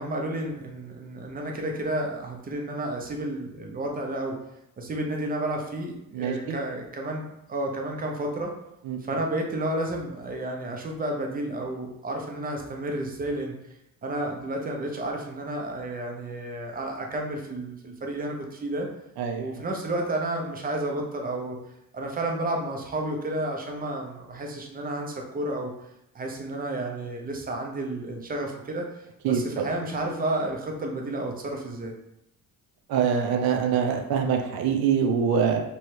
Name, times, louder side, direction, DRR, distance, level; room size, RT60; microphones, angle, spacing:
voice 1, 0.0-4.4 4.8-8.5 9.0-13.6 14.0-18.9 19.4-21.6 21.9-25.7 26.1-28.9 29.3-31.9, right 1 dB, 25° right, 1 dB, 0.6 m, -31 dB
voice 2, 6.1-6.6 8.8-9.2 19.2-19.6 29.2-29.7 32.9-35.6, right 7 dB, 85° right, 4 dB, 0.7 m, -25 dB
3.1 x 3.1 x 4.6 m, 0.85 s
cardioid pair, 175°, 36 cm